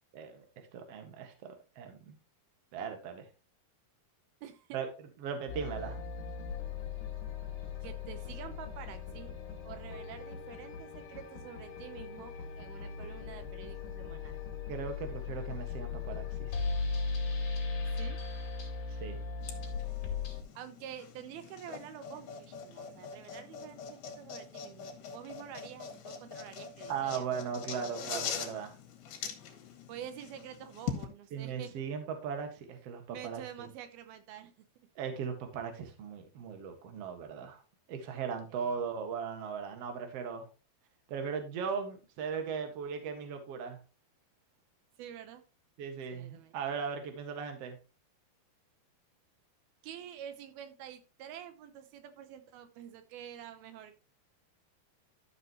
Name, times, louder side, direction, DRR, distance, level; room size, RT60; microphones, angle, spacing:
voice 1, 0.1-0.5 0.7-2.2 2.7-3.3 4.7-4.9 5.2-6.0 14.7-16.6 18.9-19.2 26.9-28.7 31.3-33.7 35.0-37.6 37.9-40.5 41.1-43.8 45.8-47.8, right 6 dB, 50° right, 6 dB, 2.2 m, -38 dB
voice 2, 4.4-4.8 7.8-9.3 9.6-14.4 17.9-18.2 20.6-27.3 29.9-31.7 33.1-34.7 38.5-38.8 45.0-45.4 46.1-46.6 49.8-54.0, right 10 dB, 85° right, 9 dB, 2.8 m, -48 dB
sound 1, 5.5-20.4, left 4 dB, 55° left, 4.0 m, -38 dB
sound 2, 19.4-31.1, left 7 dB, 85° left, 3.9 m, -43 dB
13.5 x 6.6 x 3.0 m, 0.31 s
omnidirectional pair, 4.4 m